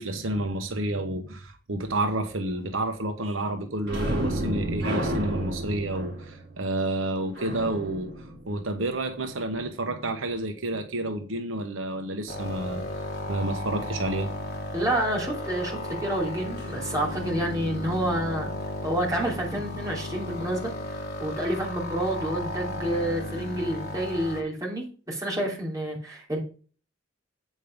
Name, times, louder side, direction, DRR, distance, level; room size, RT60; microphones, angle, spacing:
voice 1, 0.0-12.9 13.3-14.3, right 1 dB, 80° right, 5 dB, 1.1 m, -30 dB
sound 1, 3.8-9.2 16.6-16.7 17.1-17.3, right 1 dB, 55° right, 2.8 m, -32 dB
sound 2, 12.3-24.4, left 1 dB, 55° left, 1.7 m, -34 dB
voice 2, 14.7-18.5 18.8-26.4, right 1 dB, 20° right, -3 dB, 3.1 m, -29 dB
8.4 x 5.4 x 5.2 m, 0.39 s
head